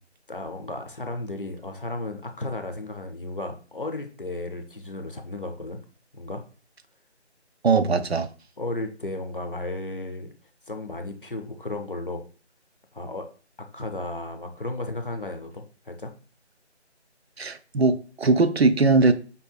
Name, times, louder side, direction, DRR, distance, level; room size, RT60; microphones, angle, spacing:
voice 1, 0.3-5.8 6.1-6.4 8.6-10.3 10.7-12.2 12.9-13.3 13.7-16.1, left 2 dB, 50° left, 0.6 m, -34 dB
voice 2, 7.6-8.3 17.4-19.1, right 3 dB, 65° right, 0.5 m, -20 dB
5.3 x 2.8 x 2.2 m
figure-of-eight pair, 175°, 35 cm